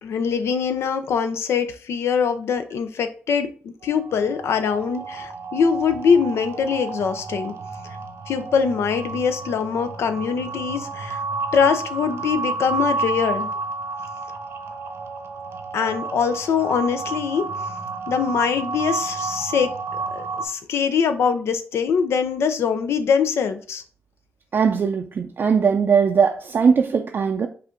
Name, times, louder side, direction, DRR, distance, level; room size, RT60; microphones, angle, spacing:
voice 1, 0.0-3.5 3.8-7.5 8.3-11.2 11.5-13.5 15.7-17.4 18.1-19.7 20.1-23.8, left 6 dB, 90° left, 0.6 m, -23 dB
sound 1, 3.8-20.5, right 3 dB, 75° right, 0.7 m, -31 dB
voice 2, 24.5-27.5, right 6 dB, 55° right, 0.4 m, -19 dB
5.5 x 2.5 x 3.7 m
cardioid pair, 90°, 4 cm